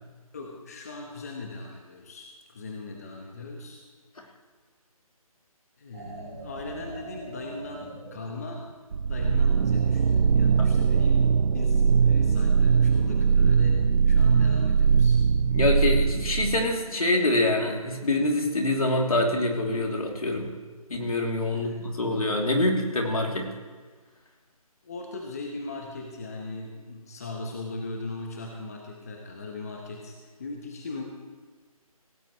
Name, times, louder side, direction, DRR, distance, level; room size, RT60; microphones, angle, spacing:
voice 1, 0.3-3.8 5.8-8.6 9.1-15.2 21.5-21.8 24.8-31.0, left 3 dB, 25° left, 0 dB, 1.1 m, -38 dB
sound 1, 5.9-8.8 9.2-11.2, right 2 dB, 30° right, 4.4 m, -44 dB
sound 2, 8.9-16.8, right 6 dB, 75° right, 0.4 m, -21 dB
voice 2, 15.5-20.5 20.9-23.5, left 2 dB, 70° left, 0 dB, 3.1 m, -25 dB
17.0 x 17.0 x 3.2 m, 1.4 s
figure-of-eight pair, 170°, 19 cm